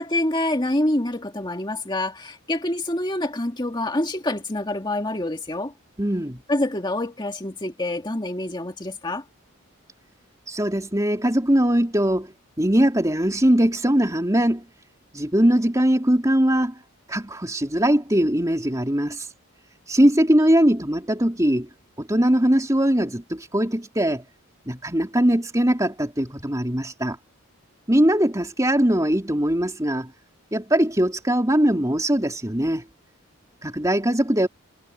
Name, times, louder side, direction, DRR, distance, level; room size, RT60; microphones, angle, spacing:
voice 1, 0.0-5.7 6.5-9.2, left 1 dB, 20° left, 2.0 m, -26 dB
voice 2, 6.0-6.4 10.5-14.6 15.1-16.8 17.1-19.3 19.9-21.7 22.0-24.2 24.7-27.2 27.9-30.1 30.5-32.8 33.6-34.5, equal, 15° right, 3.6 m, -21 dB
head